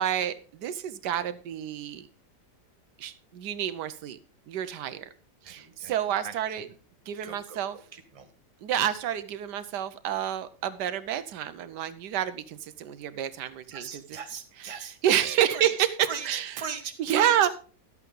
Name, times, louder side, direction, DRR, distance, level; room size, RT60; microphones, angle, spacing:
voice 1, 0.0-2.1 3.0-4.2 4.5-5.0 5.5-6.6 7.1-7.7 8.6-13.9 15.0-15.7 16.3-16.4 17.1-17.5, right 10 dB, 85° right, 13 dB, 1.4 m, -29 dB
voice 2, 5.4-5.9 6.2-6.3 7.2-8.3 13.7-17.5, right 6 dB, 25° right, 7 dB, 1.0 m, -39 dB
12.0 x 8.3 x 3.8 m, 0.41 s
omnidirectional pair, 1.8 m